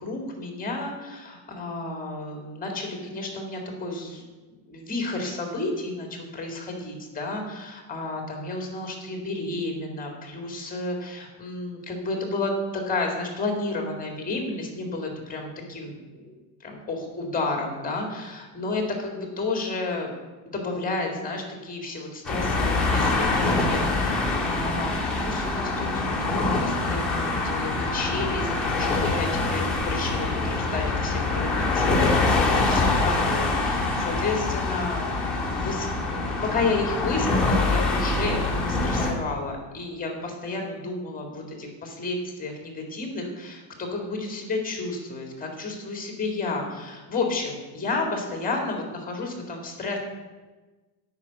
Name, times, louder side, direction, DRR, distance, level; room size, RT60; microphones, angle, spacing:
voice 1, 0.0-20.1 20.5-35.1 35.5-50.0, left 3 dB, 20° left, 2 dB, 2.1 m, -31 dB
sound 1, 22.2-39.1, left 3 dB, ahead, 2.6 m, -25 dB
9.9 x 6.0 x 8.4 m, 1.2 s
cardioid pair, 150°, 43 cm